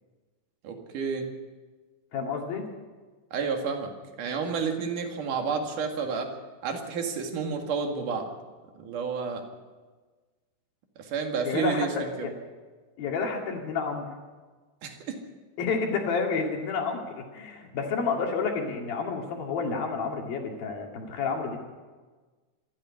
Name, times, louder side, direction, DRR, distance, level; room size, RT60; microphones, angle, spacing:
voice 1, 0.6-1.3 3.3-3.9 4.2-6.3 6.6-8.3 8.8-9.4 11.0-12.3 14.8-15.2, right 5 dB, 50° right, 3 dB, 2.9 m, -30 dB
voice 2, 2.1-2.6 11.5-11.9 12.2-12.3 13.0-14.1 15.6-17.0 17.3-21.6, left 5 dB, 55° left, 2 dB, 3.4 m, -29 dB
26.0 x 10.0 x 9.8 m, 1.4 s
omnidirectional pair, 5.7 m